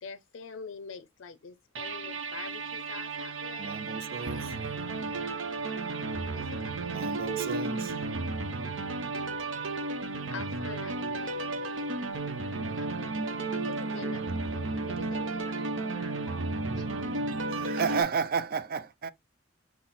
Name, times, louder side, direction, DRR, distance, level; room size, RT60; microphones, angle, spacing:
voice 1, 0.0-3.8 4.3-4.5 4.9-5.0 6.3-6.9 10.3-11.7 12.8-14.2 14.5-15.4, left 5 dB, 80° left, 0.5 m, -45 dB
sound 1, 1.8-18.0, right 3 dB, 75° right, 0.7 m, -33 dB
voice 2, 3.6-4.6 6.8-8.0 17.5-19.1, right 6 dB, 50° right, 0.4 m, -32 dB
voice 3, 12.4-12.8 15.4-17.1, right 1 dB, 25° right, 3.0 m, -51 dB
6.0 x 2.0 x 4.1 m
head